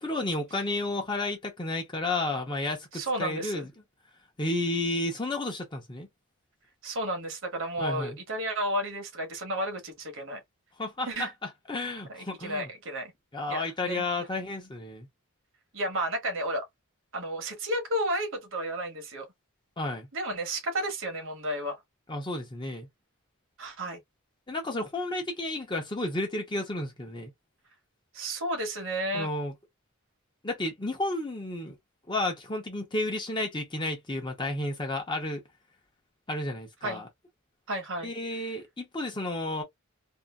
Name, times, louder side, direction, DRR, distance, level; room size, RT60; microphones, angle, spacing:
voice 1, 0.0-3.7 4.4-6.1 7.8-8.2 10.8-12.7 13.3-15.1 19.8-20.1 22.1-22.9 24.5-27.3 29.1-29.5 30.4-31.8 32.1-35.4 36.3-37.1 38.0-39.6, left 2 dB, 20° left, 0.8 m, -32 dB
voice 2, 2.9-3.7 6.8-10.4 11.1-11.3 12.1-13.1 13.5-14.0 15.7-16.7 17.1-19.3 20.1-21.8 23.6-24.0 28.1-29.3 36.8-37.0 37.7-38.1, right 1 dB, 60° right, 1.1 m, -32 dB
2.7 x 2.4 x 2.3 m
head